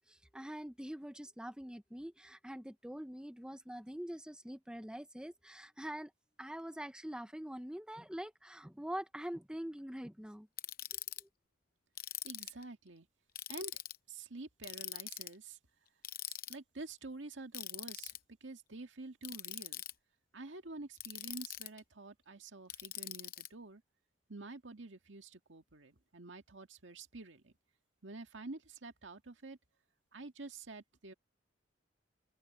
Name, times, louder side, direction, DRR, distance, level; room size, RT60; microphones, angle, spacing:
voice 1, 0.0-6.1 6.4-10.5 11.2-11.3, equal, 5° right, 0.9 m, -44 dB
Ratchet pawl, 10.6-11.2 12.0-12.6 13.4-14.0 14.6-15.3 16.0-16.5 17.5-18.2 19.2-19.9 21.0-21.8 22.7-23.5, left 13 dB, 50° left, 0.8 m, -43 dB
voice 2, 12.2-13.1 13.5-13.7 14.1-15.6 16.3-19.8 20.3-23.8 24.3-27.5 28.0-29.6 30.1-31.1, right 2 dB, 80° right, 2.0 m, -48 dB
head